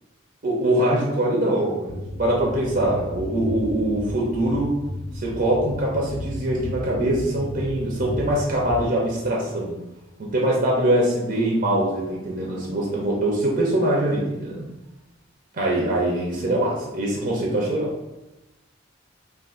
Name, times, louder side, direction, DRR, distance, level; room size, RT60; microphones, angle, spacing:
voice 1, 0.4-4.7 5.1-9.8 10.2-14.7 15.5-17.9, right 1 dB, 45° right, -3 dB, 0.5 m, -23 dB
sound 1, 1.9-8.9, left 1 dB, 70° left, 0.4 m, -34 dB
3.6 x 2.4 x 2.5 m, 0.95 s
head